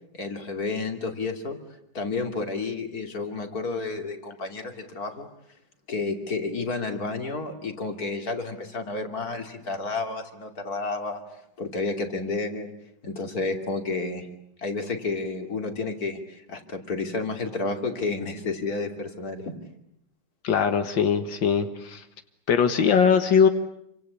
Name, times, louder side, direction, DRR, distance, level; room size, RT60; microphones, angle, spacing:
voice 1, 0.1-1.6 1.9-5.3 5.9-11.2 11.6-12.7 13.0-14.3 14.6-19.5, left 3 dB, 50° left, 5 dB, 3.3 m, -31 dB
voice 2, 20.4-22.0 22.5-23.5, left 6 dB, 90° left, 8 dB, 2.2 m, -21 dB
28.0 x 25.5 x 8.3 m, 0.75 s
omnidirectional pair, 2.0 m